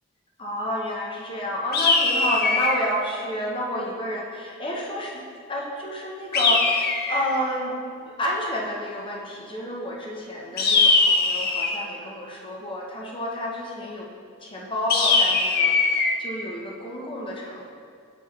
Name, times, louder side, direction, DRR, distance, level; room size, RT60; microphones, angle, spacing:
voice 1, 0.4-5.2 5.5-14.1 14.4-17.6, equal, 25° left, -2 dB, 1.0 m, -30 dB
sound 1, 1.7-2.9 6.3-7.4 10.6-11.8 14.9-16.1, left 3 dB, 50° left, 0.6 m, -21 dB
7.1 x 4.5 x 4.4 m, 2.3 s
head